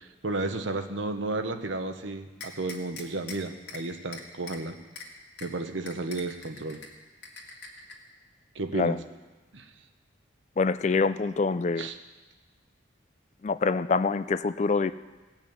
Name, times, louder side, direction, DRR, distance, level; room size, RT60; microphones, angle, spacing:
voice 1, 0.0-4.8 5.4-6.8 8.5-9.0 9.5-9.7 11.8-12.0, right 2 dB, 70° right, 7 dB, 1.0 m, -33 dB
sound 1, 2.4-3.4 3.7-3.8 4.1-4.6 5.0-5.1 5.4-5.5 5.9-6.9 7.2-7.9, left 5 dB, 60° left, 2.1 m, -41 dB
voice 2, 10.6-11.9 13.4-14.9, left 4 dB, 35° left, 13 dB, 0.3 m, -25 dB
17.5 x 6.0 x 8.7 m, 1.2 s
head